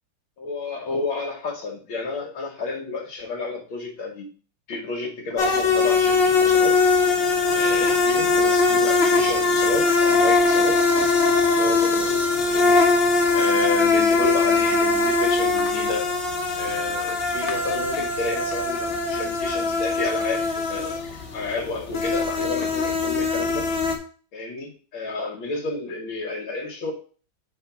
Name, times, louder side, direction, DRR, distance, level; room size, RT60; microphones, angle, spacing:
voice 1, 0.4-4.3 4.7-6.8 7.5-10.8 11.5-12.8 13.3-16.1 16.5-21.0 21.3-23.7 24.3-26.9, left 3 dB, 70° left, -1 dB, 1.7 m, -31 dB
sound 1, 5.4-24.0, left 3 dB, 55° left, 0.6 m, -21 dB
5.0 x 3.7 x 5.7 m, 0.41 s
omnidirectional pair, 2.3 m